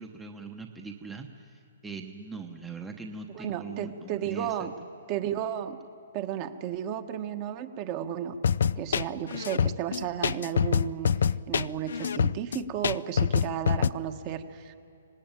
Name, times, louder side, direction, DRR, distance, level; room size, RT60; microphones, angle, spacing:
voice 1, 0.0-4.7, right 4 dB, 5° right, 3 dB, 1.0 m, -41 dB
voice 2, 3.3-4.7 5.1-5.8 6.1-8.3 8.7-11.1 11.5-14.7, right 10 dB, 30° right, 8 dB, 1.3 m, -33 dB
sound 1, 8.4-13.9, left 7 dB, 70° left, 0.5 m, -25 dB
25.5 x 19.0 x 9.0 m, 2.6 s
hypercardioid pair, 160°, 0 cm